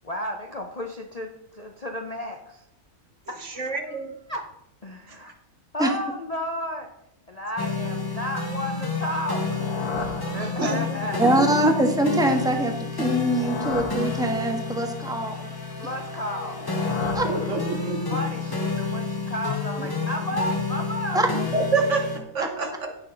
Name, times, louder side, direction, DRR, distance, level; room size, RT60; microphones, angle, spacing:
voice 1, 0.0-2.7 3.3-4.0 4.3-4.4 4.8-5.3 5.7-6.9 7.3-9.6 10.3-11.3 15.8-16.7 17.2-17.5 17.8-21.2, equal, 35° left, 2 dB, 0.7 m, -33 dB
voice 2, 3.4-4.1 5.1-5.2 10.3-10.8 11.4-11.5 17.3-18.2 21.5-22.9, right 3 dB, 55° right, 5 dB, 1.4 m, -27 dB
sound 1, 7.6-22.2, left 4 dB, 15° left, 1.0 m, -30 dB
sound 2, 9.2-11.1 13.0-14.8 16.3-18.1, left 3 dB, 80° left, 1.8 m, -35 dB
voice 3, 11.2-15.4 17.1-17.3 21.1-21.3 22.4-22.5, right 1 dB, 5° right, 3 dB, 1.2 m, -23 dB
15.5 x 6.3 x 3.9 m, 0.85 s
omnidirectional pair, 1.6 m